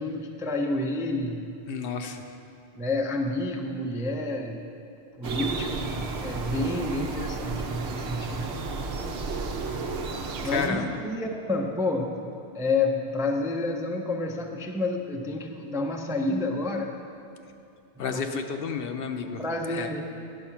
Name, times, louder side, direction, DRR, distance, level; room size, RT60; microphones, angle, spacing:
voice 1, 0.0-1.5 2.8-4.7 5.2-8.6 10.4-16.9 18.0-18.3 19.2-20.0, left 2 dB, 5° right, 3 dB, 0.3 m, -29 dB
voice 2, 1.7-2.2 10.4-10.9 18.0-20.0, left 6 dB, 65° left, 6 dB, 0.8 m, -31 dB
sound 1, 5.2-10.7, right 3 dB, 85° right, 1.0 m, -32 dB
10.0 x 7.0 x 5.7 m, 2.6 s
omnidirectional pair, 1.1 m